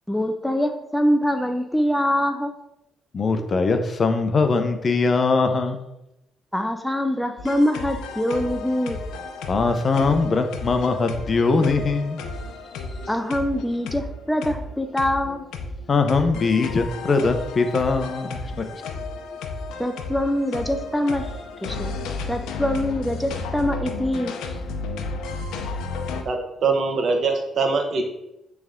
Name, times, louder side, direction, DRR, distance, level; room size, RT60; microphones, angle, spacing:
voice 1, 0.1-2.5 6.5-9.0 13.1-15.4 19.8-21.3 21.6-21.9 22.3-24.3, left 1 dB, 5° left, 6 dB, 0.5 m, -24 dB
voice 2, 3.1-5.8 9.5-12.2 15.9-18.6, left 4 dB, 40° left, 7 dB, 0.8 m, -21 dB
sound 1, 7.4-26.2, left 3 dB, 90° left, 0.7 m, -33 dB
voice 3, 26.2-28.0, right 4 dB, 60° right, 4 dB, 1.2 m, -23 dB
8.9 x 3.5 x 3.7 m, 0.89 s
cardioid pair, 90°, 0 cm